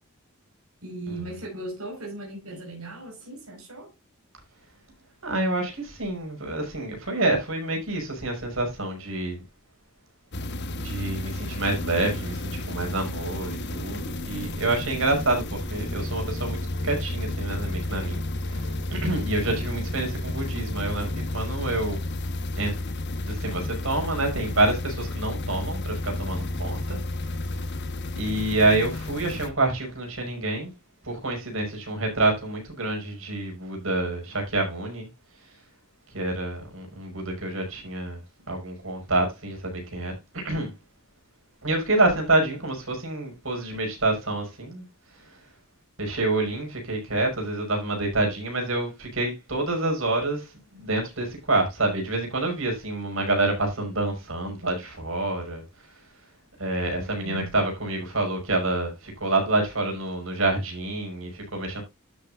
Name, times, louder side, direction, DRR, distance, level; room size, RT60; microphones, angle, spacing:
voice 1, 0.8-3.9 19.6-19.9 56.9-57.5, right 2 dB, 90° right, 4.8 m, -38 dB
voice 2, 5.2-9.4 10.8-22.0 22.6-22.8 23.2-27.0 27.5-27.6 28.2-30.7 31.0-35.1 36.1-38.2 38.5-40.7 41.6-44.8 45.1-45.4 46.0-55.6 56.6-61.8, right 2 dB, 65° right, 5.8 m, -27 dB
sound 1, 10.3-29.5, left 1 dB, 50° left, 1.2 m, -32 dB
12.0 x 8.4 x 2.4 m
head